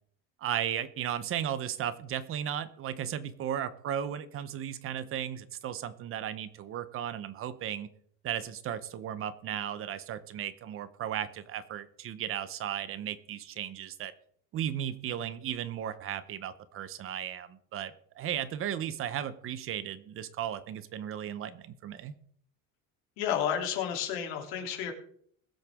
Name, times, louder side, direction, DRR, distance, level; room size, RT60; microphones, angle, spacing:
voice 1, 0.4-7.9 8.2-14.1 14.5-22.1, right 10 dB, 40° right, 14 dB, 0.8 m, -35 dB
voice 2, 23.2-24.9, left 9 dB, 85° left, 2 dB, 3.2 m, -31 dB
21.0 x 7.9 x 3.6 m, 0.63 s
cardioid pair, 165°, 35 cm